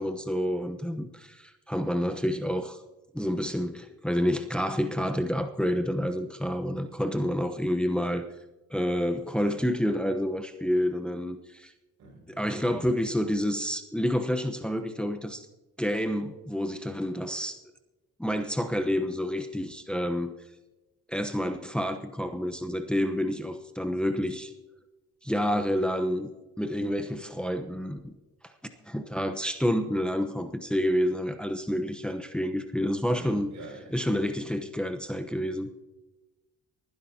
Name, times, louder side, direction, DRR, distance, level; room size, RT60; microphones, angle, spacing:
voice 1, 0.0-2.8 3.1-8.2 8.7-11.7 12.3-15.5 15.8-17.6 18.2-20.3 21.1-24.5 25.2-26.3 26.6-28.0 28.8-33.5 33.9-35.7, equal, 5° left, 6 dB, 0.9 m, -29 dB
voice 2, 12.0-13.0 33.1-33.9, right 3 dB, 70° right, 0 dB, 5.9 m, -45 dB
29.0 x 10.0 x 2.8 m, 1.1 s
cardioid pair, 90°, 30 cm